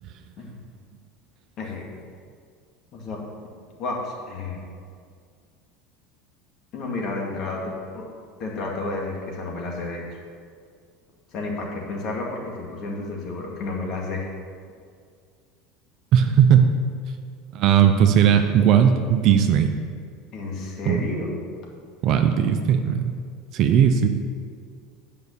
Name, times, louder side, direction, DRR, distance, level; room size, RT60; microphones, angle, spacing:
voice 1, 2.9-3.2 3.8-4.6 6.7-8.1 8.4-10.2 11.3-14.3 20.3-21.3, left 3 dB, 50° left, -1 dB, 2.1 m, -31 dB
voice 2, 16.1-16.7 17.5-19.7 20.9-21.0 22.0-23.2 23.5-24.1, right 8 dB, 55° right, 6 dB, 0.6 m, -17 dB
8.6 x 5.4 x 6.9 m, 2.1 s
supercardioid pair, 115°, 0 cm